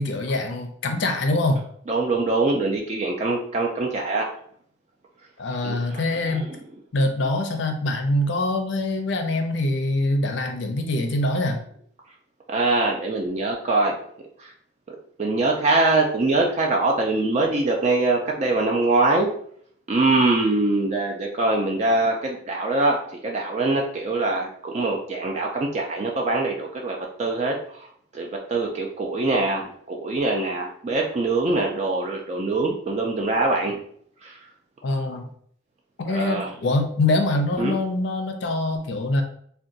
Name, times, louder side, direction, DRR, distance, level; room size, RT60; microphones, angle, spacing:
voice 1, 0.0-1.6 5.4-6.5 6.9-11.6 34.8-35.3 36.0-39.2, left 2 dB, 60° left, 5 dB, 0.4 m, -24 dB
voice 2, 1.9-4.3 5.6-6.5 12.5-14.0 14.4-14.5 14.9-19.3 19.9-23.0 23.2-33.8 34.2-34.4 36.1-36.5 37.6-37.8, right 2 dB, 35° right, 0 dB, 0.4 m, -23 dB
2.5 x 2.2 x 3.8 m, 0.63 s
head